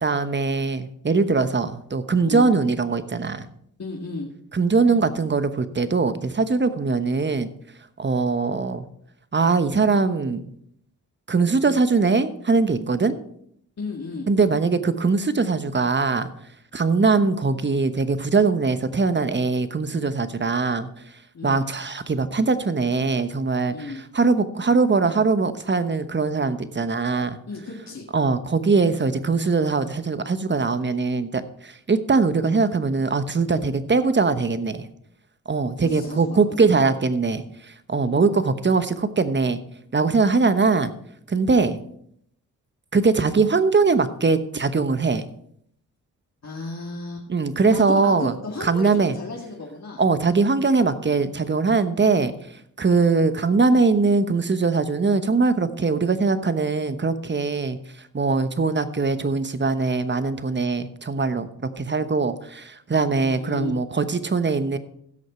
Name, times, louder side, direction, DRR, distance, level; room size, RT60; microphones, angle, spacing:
voice 1, 0.0-3.5 4.5-7.5 8.0-8.8 9.3-10.4 11.3-13.1 14.3-16.3 16.7-20.9 21.4-27.4 28.1-34.9 35.5-39.6 39.9-40.9 41.3-41.8 42.9-45.2 47.3-48.3 48.6-49.1 50.0-52.3 52.8-57.8 58.1-61.5 61.7-64.8, right 4 dB, 30° right, 12 dB, 1.1 m, -21 dB
voice 2, 2.2-2.5 3.8-4.3 13.8-14.3 21.3-21.7 23.7-24.0 27.5-28.1 35.8-36.9 38.0-38.3 46.4-47.3 47.7-50.0 58.2-58.5 63.0-63.7, left 3 dB, 45° left, -3 dB, 2.1 m, -34 dB
16.0 x 6.5 x 4.4 m, 0.69 s
supercardioid pair, 45°, 38 cm